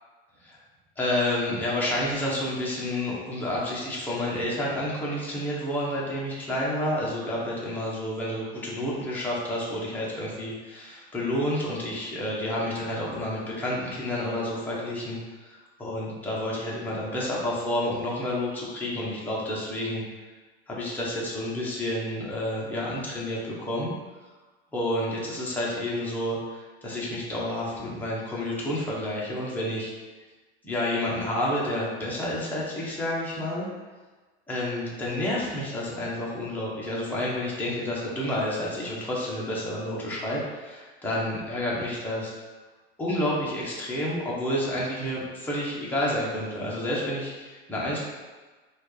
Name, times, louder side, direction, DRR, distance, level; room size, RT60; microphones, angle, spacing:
voice 1, 1.0-20.0 20.7-23.9 24.7-29.9 30.6-33.7 34.5-42.3 43.0-48.1, left 1 dB, 5° left, -6 dB, 1.0 m, -30 dB
4.3 x 2.6 x 3.2 m, 1.3 s
supercardioid pair, 120°, 30 cm